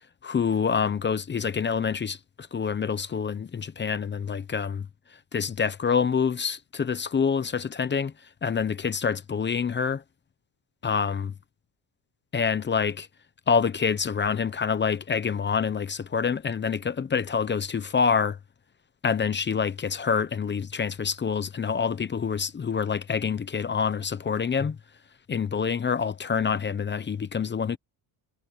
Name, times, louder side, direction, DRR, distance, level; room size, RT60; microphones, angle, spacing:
voice 1, 0.2-4.9 5.3-8.1 8.4-10.0 10.8-11.3 12.3-13.1 13.5-18.4 19.0-24.8 25.3-27.8, left 6 dB, 25° left, 1.0 m, -26 dB
cardioid pair, 130°, 48 cm